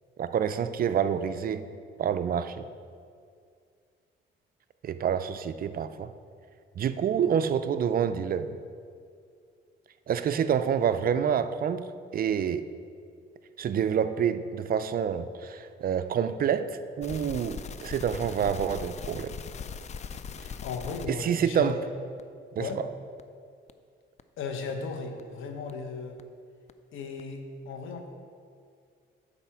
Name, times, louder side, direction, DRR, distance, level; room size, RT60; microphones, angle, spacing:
voice 1, 0.2-1.7 2.0-2.6 4.8-6.1 6.8-8.6 10.1-11.9 12.1-12.7 13.6-16.7 17.0-19.3 21.1-21.8 22.6-22.7, right 8 dB, 50° right, 11 dB, 0.4 m, -27 dB
sound 1, 17.0-21.2 21.7-21.8 22.2-22.3 22.7-22.8 23.2-23.3 23.7-23.8 24.2-24.3 24.7-24.8 25.2-25.3 25.7-25.8 26.2-26.3 26.7-26.8 27.2-27.3, left 6 dB, 35° left, 0.3 m, -39 dB
voice 2, 20.6-21.9 22.6-22.8 24.4-26.2 26.9-28.1, left 4 dB, 80° left, 4 dB, 0.9 m, -36 dB
9.0 x 4.1 x 5.7 m, 2.3 s
cardioid pair, 90°, 20 cm